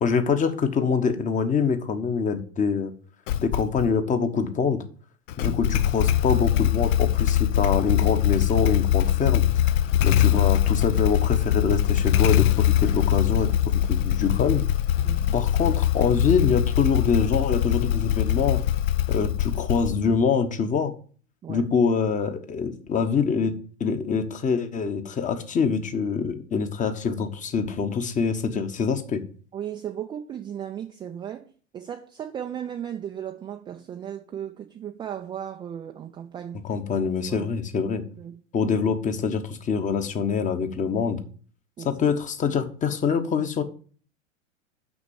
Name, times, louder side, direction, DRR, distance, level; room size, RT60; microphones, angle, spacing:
voice 1, 0.0-2.9 3.4-4.8 5.4-9.7 10.0-14.6 15.3-18.6 19.1-20.9 21.5-23.5 23.8-29.2 36.6-38.0 38.5-41.2 41.8-43.6, left 5 dB, 20° left, 1.1 m, -25 dB
Motorcycle / Engine starting, 3.3-3.9 5.3-20.2, left 11 dB, 45° left, 0.6 m, -22 dB
voice 2, 15.0-15.4 21.4-21.6 29.5-36.6 37.3-37.5 37.8-38.7 41.8-42.0, right 9 dB, 15° right, 0.4 m, -36 dB
6.2 x 6.0 x 7.1 m
figure-of-eight pair, 90°, 38 cm